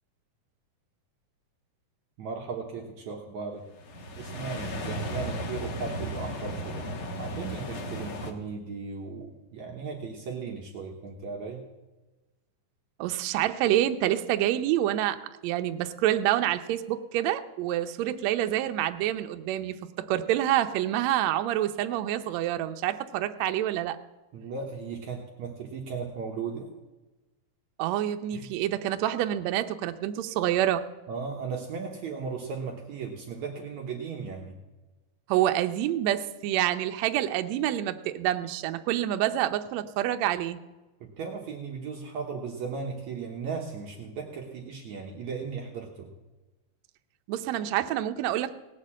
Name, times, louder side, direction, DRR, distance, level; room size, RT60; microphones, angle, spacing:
voice 1, 2.2-3.6 4.2-11.6 24.3-26.7 28.3-28.5 31.1-34.6 41.2-46.1, right 5 dB, 65° right, 0 dB, 2.2 m, -36 dB
sound 1, 3.7-8.3, equal, 55° left, 1.5 m, -35 dB
voice 2, 13.0-24.0 27.8-30.8 35.3-40.6 47.3-48.6, right 12 dB, 85° right, 8 dB, 1.5 m, -27 dB
18.0 x 6.6 x 7.4 m, 1.1 s
omnidirectional pair, 4.0 m